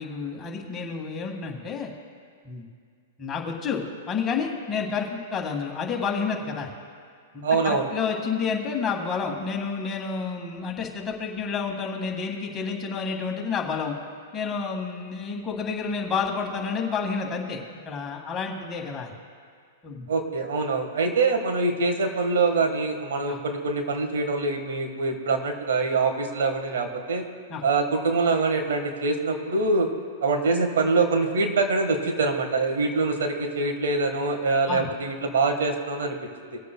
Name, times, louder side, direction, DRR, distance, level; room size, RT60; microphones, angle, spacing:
voice 1, 0.0-1.9 2.4-2.6 3.2-6.7 7.3-13.9 14.3-17.6 17.9-19.1 19.8-20.1 23.3-23.4 27.5-27.6 34.7-34.9, left 5 dB, 25° left, 1 dB, 1.8 m, -30 dB
voice 2, 7.4-7.9 20.1-27.2 27.6-29.9 30.2-36.2 36.5-36.6, right 3 dB, 75° right, 5 dB, 1.6 m, -24 dB
23.0 x 8.2 x 2.3 m, 2.1 s
hypercardioid pair, 120°, 0 cm